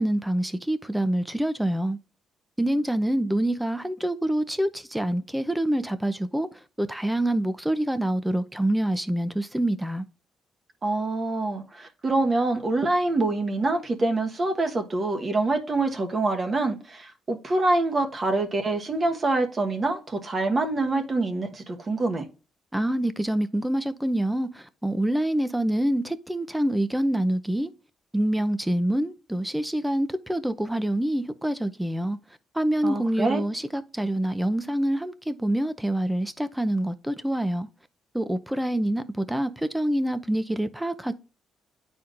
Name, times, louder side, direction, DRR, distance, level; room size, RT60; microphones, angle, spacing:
voice 1, 0.0-2.0 2.6-6.5 6.8-10.1 22.7-27.7 28.1-32.2 32.5-37.7 38.1-41.1, right 1 dB, 5° right, 0.6 m, -26 dB
voice 2, 10.8-22.3 32.8-33.4, right 2 dB, 35° right, 1.2 m, -25 dB
9.8 x 4.4 x 2.5 m
cardioid pair, 90°, 0 cm